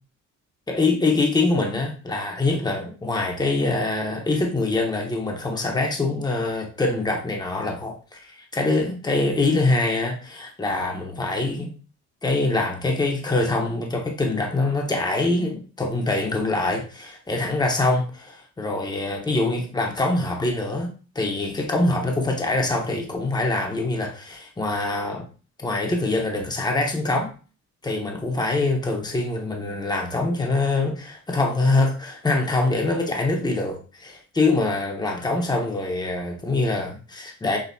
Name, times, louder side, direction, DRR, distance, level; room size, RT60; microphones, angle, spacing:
voice 1, 0.7-11.7 12.2-25.2 25.6-27.3 27.8-37.6, left 2 dB, 15° left, 1 dB, 1.0 m, -24 dB
6.3 x 2.4 x 2.7 m, 0.36 s
cardioid pair, 90°, 30 cm